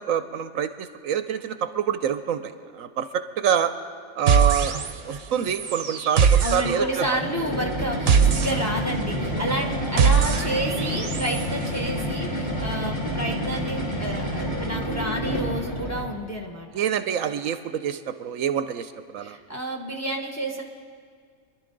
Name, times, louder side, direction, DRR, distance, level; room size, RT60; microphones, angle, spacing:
voice 1, 0.0-3.7 4.2-4.8 5.0-7.0 16.7-19.4, right 8 dB, 70° right, 10 dB, 1.0 m, -26 dB
sound 1, 4.3-5.2 5.4-11.5, right 6 dB, 50° right, 0.9 m, -23 dB
voice 2, 6.4-16.7 19.2-20.6, right 1 dB, 15° left, 2 dB, 0.9 m, -30 dB
sound 2, 7.1-16.2, equal, 35° left, 2.4 m, -29 dB
28.0 x 11.5 x 3.9 m, 2.1 s
omnidirectional pair, 1.5 m